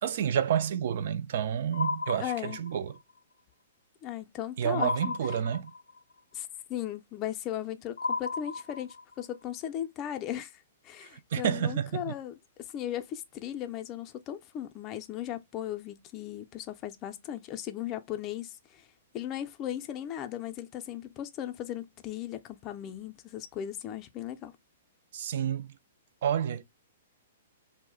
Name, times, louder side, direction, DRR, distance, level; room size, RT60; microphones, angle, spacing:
voice 1, 0.0-3.0 4.6-5.7 11.0-12.1 25.1-25.7 26.2-26.6, right 9 dB, 60° right, 0.3 m, -30 dB
sound 1, 1.7-3.0 4.7-6.0 8.0-9.2, left 4 dB, 80° left, 0.5 m, -34 dB
voice 2, 2.2-2.6 4.0-5.1 6.3-18.8 19.1-24.5, left 11 dB, 30° left, 0.5 m, -37 dB
2.2 x 2.1 x 3.6 m
hypercardioid pair, 120°, 0 cm